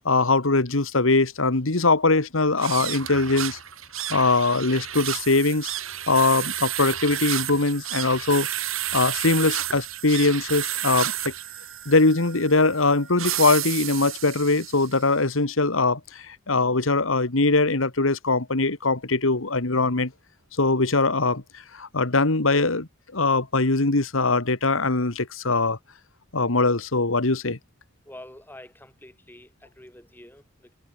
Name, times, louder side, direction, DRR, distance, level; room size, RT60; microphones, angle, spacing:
voice 1, 0.1-3.6 4.1-5.7 6.1-8.5 8.9-11.3 11.9-20.1 20.6-21.4 21.7-22.9 23.1-25.8 26.3-27.6, left 3 dB, 85° left, 1.9 m, -22 dB
sound 1, 2.5-15.0, right 12 dB, 90° right, 3.8 m, -31 dB
voice 2, 28.0-30.7, left 1 dB, 10° left, 3.3 m, -47 dB
head